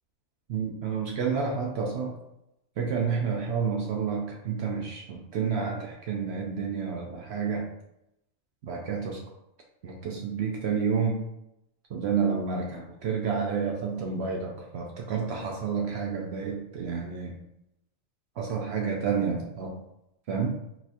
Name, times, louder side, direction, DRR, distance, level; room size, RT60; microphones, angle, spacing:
voice 1, 0.5-2.2 2.8-7.7 8.6-9.2 9.8-11.2 11.9-17.4 18.4-19.7 20.3-20.5, right 6 dB, 65° right, 0 dB, 0.7 m, -30 dB
4.1 x 2.8 x 2.5 m, 0.84 s
omnidirectional pair, 1.4 m